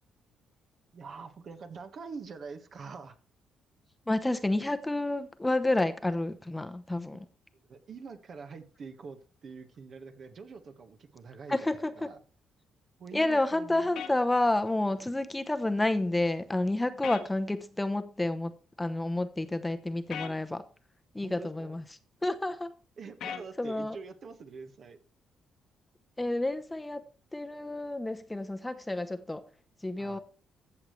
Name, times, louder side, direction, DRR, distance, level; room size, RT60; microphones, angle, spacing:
voice 1, 0.9-3.2 7.1-7.2 7.6-12.2 13.0-14.0 21.2-21.7 23.0-25.0 30.0-30.2, right 5 dB, 55° right, 1.4 m, -45 dB
voice 2, 4.1-7.2 11.5-12.1 13.1-18.5 18.8-20.6 21.1-21.8 22.2-22.7 23.6-24.0 26.2-27.0 27.3-29.5 29.8-30.2, left 2 dB, 10° left, 0.9 m, -30 dB
sound 1, 14.0-14.1 17.0-17.3 20.1-20.3 23.2-23.5, left 8 dB, 75° left, 1.4 m, -37 dB
14.5 x 6.6 x 3.2 m
cardioid pair, 90°, 0 cm